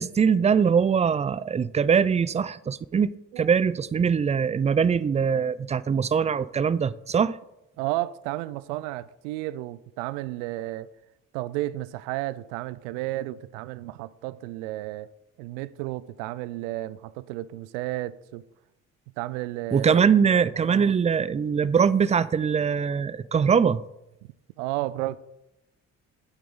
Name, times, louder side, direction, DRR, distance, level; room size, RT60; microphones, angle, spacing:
voice 1, 0.0-7.4 19.7-23.8, right 6 dB, 20° right, 0.4 m, -22 dB
voice 2, 7.8-10.9 11.3-15.1 15.4-18.4 19.2-20.0 20.7-21.0 24.6-25.2, right 16 dB, 80° right, 0.5 m, -32 dB
8.4 x 8.1 x 3.7 m
hypercardioid pair, 55°, 36 cm